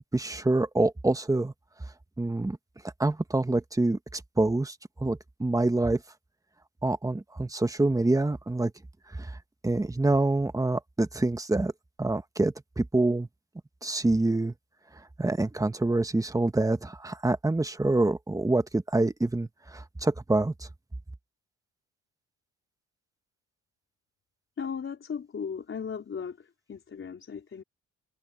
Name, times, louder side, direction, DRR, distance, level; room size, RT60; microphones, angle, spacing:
voice 1, 0.1-1.5 2.2-2.6 3.0-4.7 5.0-6.0 6.8-8.7 9.2-9.3 9.6-11.7 12.0-13.3 13.8-14.5 15.2-20.7, right 2 dB, 10° right, 1.5 m, -26 dB
voice 2, 24.6-27.6, left 6 dB, 45° left, 4.3 m, -37 dB
cardioid pair, 90°, 30 cm